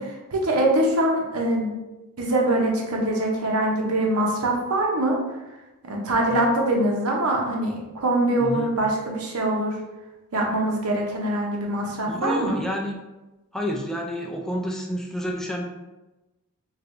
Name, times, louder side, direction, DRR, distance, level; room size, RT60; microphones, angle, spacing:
voice 1, 0.0-1.7 2.2-5.2 5.8-9.8 10.3-12.6, right 1 dB, 85° right, 0 dB, 0.7 m, -23 dB
voice 2, 8.4-8.7 12.0-13.0 13.5-15.7, equal, ahead, 0 dB, 0.3 m, -29 dB
3.2 x 2.9 x 2.5 m, 1.0 s
head